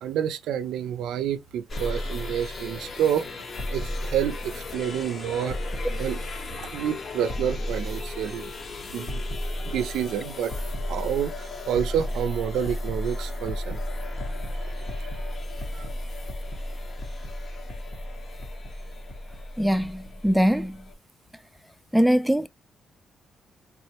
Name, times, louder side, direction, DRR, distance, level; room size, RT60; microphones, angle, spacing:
voice 1, 0.0-3.3 3.7-5.6 6.0-6.2 6.7-8.5 8.9-9.2 9.7-10.5 10.9-13.8 15.7-15.8, right 9 dB, 80° right, 0.4 m, -28 dB
sound 1, 1.7-20.9, left 1 dB, 45° left, 0.8 m, -33 dB
voice 2, 19.6-19.9 20.2-20.7 21.9-22.5, equal, ahead, 0.3 m, -21 dB
3.5 x 2.0 x 2.8 m
cardioid pair, 90°, 0 cm